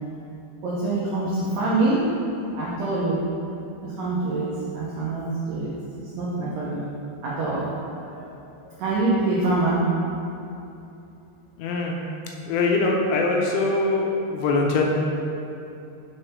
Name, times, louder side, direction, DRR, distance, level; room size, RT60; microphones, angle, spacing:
voice 1, 0.6-2.1 2.6-3.2 3.8-5.7 6.0-6.9 7.2-8.4 8.6-9.9, right 2 dB, 90° right, -7 dB, 1.8 m, -25 dB
voice 2, 11.6-11.9 12.5-14.9, left 3 dB, 80° left, -1 dB, 2.7 m, -22 dB
6.5 x 4.5 x 5.2 m, 2.7 s
omnidirectional pair, 5.2 m